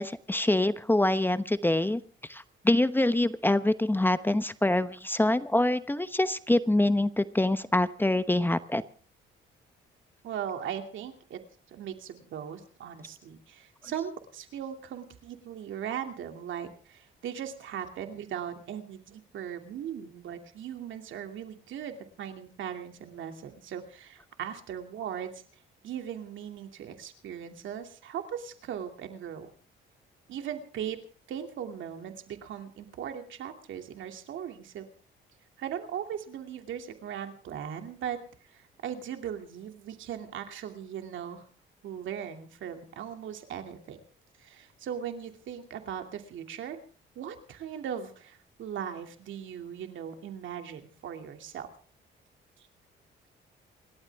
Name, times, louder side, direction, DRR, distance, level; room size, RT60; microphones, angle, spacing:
voice 1, 0.0-2.0 2.3-8.8, left 1 dB, 10° left, 12 dB, 0.9 m, -25 dB
voice 2, 10.2-11.4 11.7-25.4 25.8-29.5 30.3-31.0 31.3-34.9 35.6-38.2 38.5-41.4 41.8-44.0 44.4-46.8 47.2-51.7, right 9 dB, 75° right, 6 dB, 2.6 m, -38 dB
29.0 x 12.5 x 3.6 m, 0.41 s
cardioid pair, 90°, 20 cm